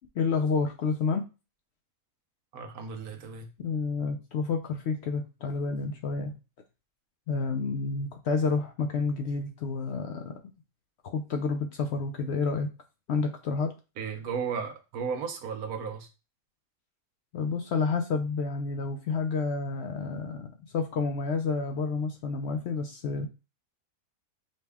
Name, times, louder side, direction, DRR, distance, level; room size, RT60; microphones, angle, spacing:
voice 1, 0.2-1.3 3.6-6.3 7.3-10.4 11.0-12.7 13.1-13.7 17.3-23.3, left 4 dB, 65° left, 4 dB, 0.7 m, -29 dB
voice 2, 2.5-3.5 14.0-16.1, right 6 dB, 90° right, 5 dB, 1.3 m, -34 dB
5.3 x 2.2 x 3.4 m, 0.29 s
omnidirectional pair, 1.5 m